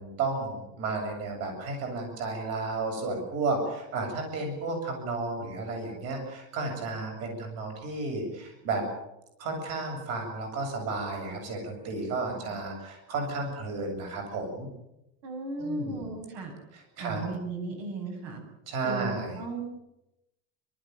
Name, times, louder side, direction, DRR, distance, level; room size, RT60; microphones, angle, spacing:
voice 1, 0.0-8.8 9.4-14.7 15.6-16.1 16.7-17.3 18.7-19.4, right 3 dB, 45° right, 3 dB, 7.7 m, -33 dB
voice 2, 15.2-16.5 17.0-18.4 18.8-19.6, right 2 dB, 65° right, 3 dB, 7.8 m, -35 dB
30.0 x 14.0 x 9.5 m, 0.90 s
cardioid pair, 155°, 34 cm